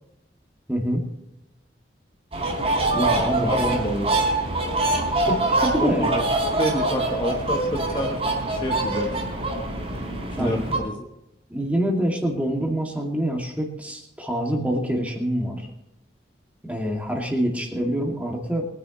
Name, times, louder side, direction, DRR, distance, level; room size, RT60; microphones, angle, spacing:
voice 1, 0.7-1.0 2.9-3.8 5.3-6.1 6.8-7.0 10.4-10.6 11.5-15.7 16.6-18.6, equal, 10° right, 0 dB, 2.3 m, -26 dB
sound 1, 2.3-10.8, right 2 dB, 35° right, 4.0 m, -24 dB
voice 2, 3.4-4.1 5.8-8.2 8.5-9.3 10.4-11.0, equal, 25° left, 1 dB, 1.1 m, -28 dB
23.0 x 10.5 x 3.1 m, 0.87 s
head